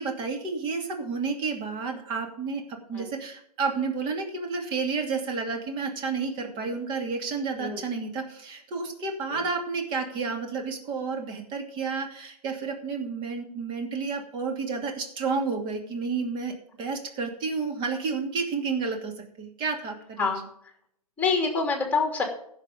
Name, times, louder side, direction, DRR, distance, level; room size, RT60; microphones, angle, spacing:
voice 1, 0.0-20.3, right 4 dB, 25° right, 3 dB, 2.6 m, -31 dB
voice 2, 21.2-22.2, left 4 dB, 10° left, 3 dB, 2.9 m, -26 dB
15.5 x 7.1 x 5.2 m, 0.68 s
hypercardioid pair, 130°, 20 cm